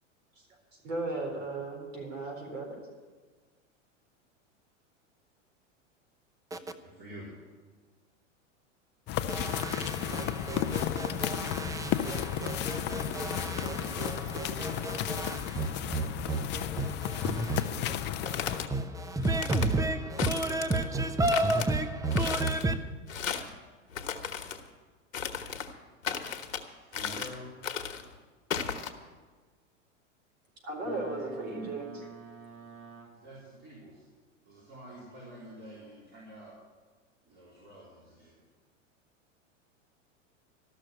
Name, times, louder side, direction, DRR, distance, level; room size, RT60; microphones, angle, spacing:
voice 1, 0.8-2.8 30.6-32.1, right 2 dB, 75° right, 4.2 m, -36 dB
voice 2, 7.0-7.3 26.8-27.5 33.2-34.1 34.5-36.6 37.2-38.4, equal, 30° right, 4.1 m, -47 dB
sound 1, 9.1-18.7, left 11 dB, 30° left, 0.5 m, -33 dB
voice 3, 9.3-22.8, right 2 dB, 10° right, 0.7 m, -32 dB
sound 2, 18.0-18.7 19.2-19.7 20.2-20.9 21.3-21.7 22.1-22.6 23.1-23.5 23.9-24.6 25.1-25.7 26.0-26.6 26.9-27.4 27.6-28.0 28.5-28.9, left 7 dB, 80° left, 1.2 m, -35 dB
Boat Water vehicle, 30.8-33.5, right 6 dB, 55° right, 1.7 m, -49 dB
13.0 x 6.5 x 9.3 m
hypercardioid pair, 110°, 39 cm